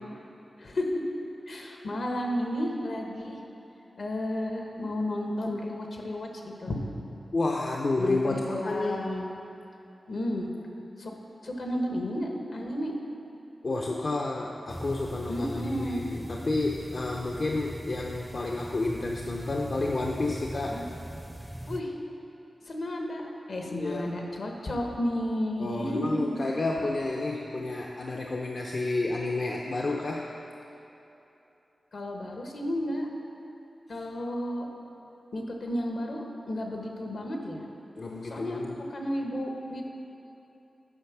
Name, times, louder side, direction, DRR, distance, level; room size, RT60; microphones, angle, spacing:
voice 1, 1.5-3.4 4.0-6.8 8.0-9.3 10.1-10.5 11.0-11.1 11.4-12.9 15.3-16.0 20.6-20.8 21.7-22.0 22.6-26.2 31.9-33.1 33.9-34.6 35.3-37.6 38.2-39.8, left 1 dB, 80° left, 1 dB, 1.1 m, -32 dB
voice 2, 7.3-9.1 13.6-20.8 23.6-24.1 25.6-30.3 38.0-38.8, left 2 dB, 60° left, 0 dB, 0.5 m, -30 dB
sound 1, 14.7-21.8, equal, 5° right, 0.4 m, -40 dB
8.6 x 5.5 x 5.9 m, 3.0 s
cardioid pair, 60°, 0 cm